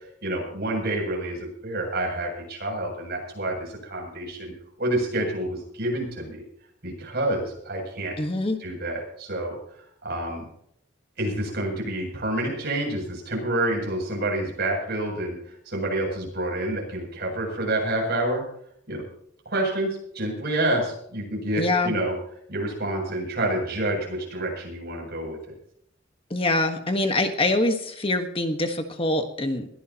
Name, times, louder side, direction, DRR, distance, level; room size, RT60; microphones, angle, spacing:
voice 1, 0.2-4.5 4.8-6.4 6.8-8.1 8.6-9.6 10.0-10.5 11.2-15.4 15.6-18.4 18.9-19.0 19.4-22.1 22.5-25.4, right 1 dB, 55° right, 0 dB, 7.8 m, -28 dB
voice 2, 8.2-8.6 21.6-21.9 26.3-29.7, left 2 dB, 30° left, 6 dB, 1.4 m, -24 dB
21.5 x 16.0 x 3.0 m, 0.69 s
head